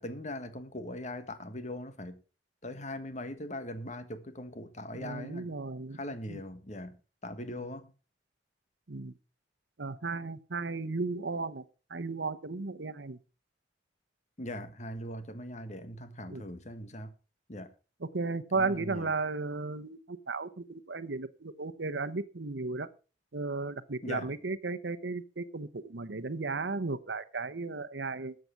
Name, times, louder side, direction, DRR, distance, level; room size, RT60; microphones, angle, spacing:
voice 1, 0.0-2.2 2.6-5.5 5.9-7.9 14.4-17.1 17.5-17.7 18.5-19.1 24.0-24.4, left 1 dB, 40° left, 1.5 m, -40 dB
voice 2, 4.9-6.0 6.3-6.4 8.9-9.1 9.8-11.6 11.9-13.2 16.3-16.4 18.0-22.9 23.3-28.4, right 3 dB, 80° right, 0.9 m, -35 dB
13.5 x 7.8 x 5.9 m
head